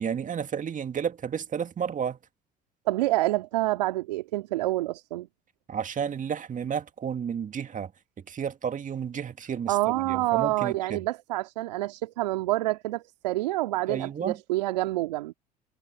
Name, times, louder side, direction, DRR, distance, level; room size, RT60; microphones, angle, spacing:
voice 1, 0.0-2.2 5.7-7.9 8.3-11.0 13.9-14.4, right 7 dB, 40° right, 2.2 m, -32 dB
voice 2, 2.9-5.3 9.7-15.3, right 18 dB, 80° right, 2.3 m, -27 dB
hypercardioid pair, 60°, 21 cm